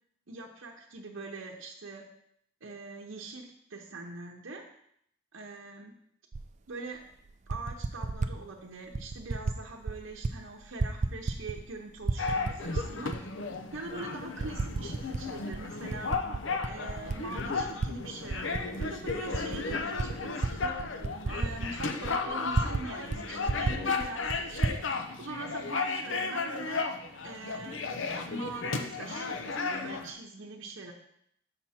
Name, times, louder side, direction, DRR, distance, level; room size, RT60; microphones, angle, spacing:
voice 1, 0.3-2.1 2.6-4.6 5.3-6.0 6.7-7.0 7.5-13.3 13.7-16.2 16.6-20.8 21.2-24.8 25.2-26.9 27.2-27.9 28.3-30.9, right 3 dB, 70° right, -1 dB, 0.9 m, -43 dB
Typing, 6.3-6.5 7.3-8.4 8.9-9.6 9.8-10.3 10.6-11.7 12.0-13.2 13.7-13.8 14.4-15.2 15.5-17.9 18.2-22.8 23.1-23.2 23.4-24.8, right 3 dB, 35° right, 0.4 m, -32 dB
sound 1, 12.2-30.1, left 4 dB, 70° left, 0.7 m, -34 dB
6.9 x 6.0 x 4.3 m, 0.71 s
head